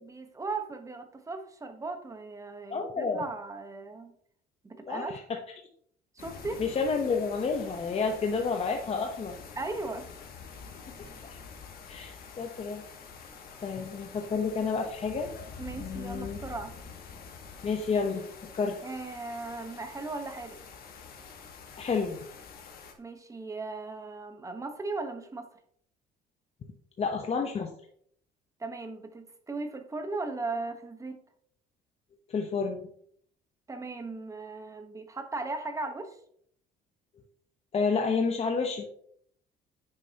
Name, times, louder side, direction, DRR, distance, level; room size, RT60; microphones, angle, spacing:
voice 1, 0.0-4.1 4.6-5.1 6.1-6.6 9.6-10.1 13.6-13.7 15.6-16.8 18.8-20.6 23.0-25.5 28.6-31.2 33.7-36.2, right 3 dB, 20° right, 6 dB, 1.2 m, -37 dB
voice 2, 2.7-3.2 4.9-5.2 6.6-9.4 11.3-11.4 11.9-12.8 13.6-15.3 15.8-16.4 17.6-18.2 18.5-18.8 21.8-22.2 27.0-27.7 32.3-32.8 37.7-38.8, left 5 dB, 35° left, 2 dB, 1.0 m, -30 dB
sound 1, 6.2-22.9, left 5 dB, 60° left, 1.7 m, -47 dB
9.5 x 6.8 x 2.9 m, 0.66 s
cardioid pair, 110°, 17 cm